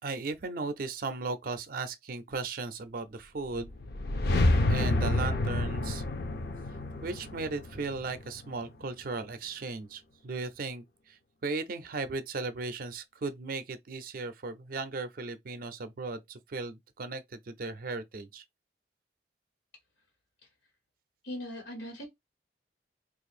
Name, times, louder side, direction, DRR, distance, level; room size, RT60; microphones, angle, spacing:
voice 1, 0.0-3.7 4.7-6.0 7.0-18.4, right 3 dB, 50° right, 0.4 m, -36 dB
sound 1, 3.5-8.7, left 2 dB, 60° left, 0.5 m, -29 dB
voice 2, 21.2-22.0, equal, 90° left, 1.2 m, -39 dB
2.6 x 2.4 x 4.1 m
head